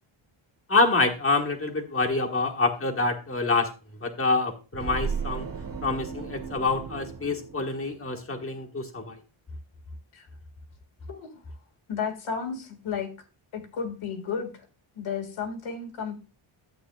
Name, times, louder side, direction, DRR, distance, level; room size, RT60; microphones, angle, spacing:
voice 1, 0.7-3.7 4.0-5.5 5.8-9.2, left 3 dB, 25° left, 2 dB, 1.4 m, -26 dB
sound 1, 4.7-8.2, right 5 dB, 40° right, 1.4 m, -35 dB
voice 2, 11.9-13.1 13.5-14.7 15.0-16.2, left 6 dB, 70° left, 4 dB, 1.9 m, -33 dB
12.5 x 8.3 x 2.3 m, 0.32 s
wide cardioid pair, 130°, 49 cm